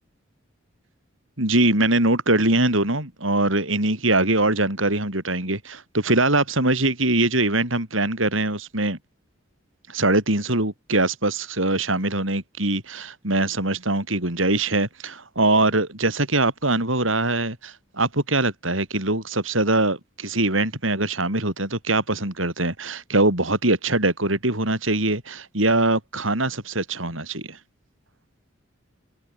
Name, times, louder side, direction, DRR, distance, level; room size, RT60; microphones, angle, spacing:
voice 1, 1.4-9.0 9.9-27.6, right 2 dB, 75° right, 7.6 m, -22 dB
open air
head